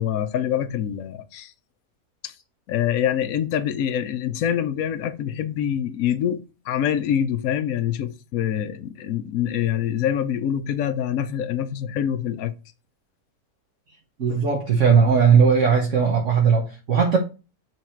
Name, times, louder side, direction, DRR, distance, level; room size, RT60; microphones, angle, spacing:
voice 1, 0.0-1.5 2.2-2.3 2.7-12.5, left 9 dB, 70° left, 1.1 m, -25 dB
voice 2, 14.2-17.2, right 6 dB, 55° right, 1.4 m, -18 dB
8.1 x 3.7 x 4.5 m
omnidirectional pair, 1.6 m